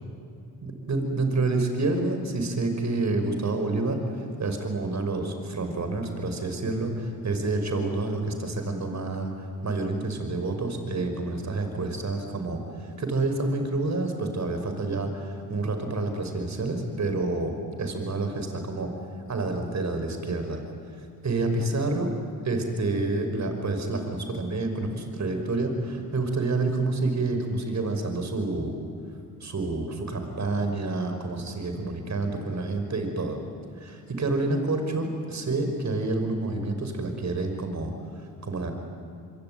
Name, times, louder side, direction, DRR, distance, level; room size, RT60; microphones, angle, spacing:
voice 1, 0.6-18.9 19.3-20.6 21.2-22.1 22.4-28.8 29.4-33.4 33.8-38.7, right 2 dB, 45° right, 6 dB, 5.5 m, -28 dB
25.0 x 23.5 x 9.6 m, 2.4 s
supercardioid pair, 65°, 39 cm